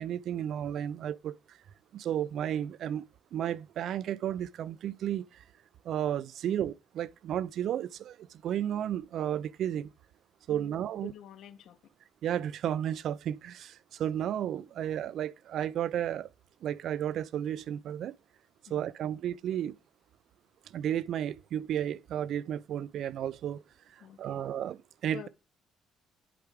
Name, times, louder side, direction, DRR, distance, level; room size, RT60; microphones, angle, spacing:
voice 1, 0.0-1.6 1.9-5.4 5.8-9.9 10.5-11.1 12.2-16.3 16.6-18.1 18.7-19.8 20.7-23.6 23.9-25.3, right 10 dB, 60° right, 0.3 m, -33 dB
voice 2, 11.0-11.9 18.7-19.2 24.0-24.5 25.1-25.3, left 11 dB, 65° left, 0.7 m, -49 dB
11.0 x 4.8 x 3.4 m
cardioid pair, 150°, 0 cm